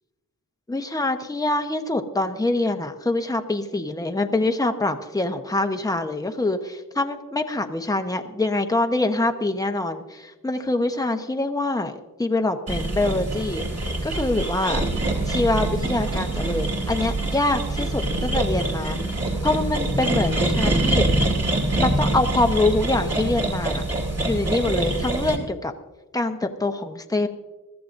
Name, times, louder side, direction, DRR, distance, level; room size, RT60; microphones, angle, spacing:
voice 1, 0.7-13.6 14.0-14.8 15.3-19.0 19.4-21.3 21.8-23.8 24.3-25.7 26.1-27.3, left 2 dB, 10° left, 5 dB, 1.0 m, -25 dB
sound 1, 12.7-25.4, right 2 dB, 40° right, 2.8 m, -25 dB
21.0 x 14.0 x 2.6 m, 1.2 s
cardioid pair, 70°, 36 cm